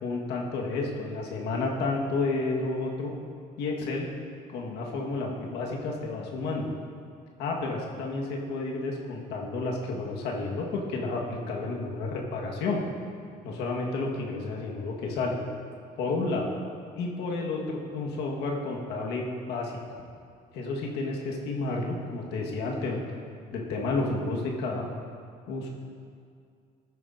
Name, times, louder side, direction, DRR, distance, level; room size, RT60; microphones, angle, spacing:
voice 1, 0.0-3.1 3.6-4.1 4.5-6.7 7.4-12.8 13.4-15.4 16.0-16.5 17.0-19.8 20.5-23.2 23.5-24.9 25.5-25.7, left 3 dB, 85° left, -1 dB, 1.4 m, -31 dB
14.0 x 9.5 x 2.6 m, 2.3 s
cardioid pair, 110°, 17 cm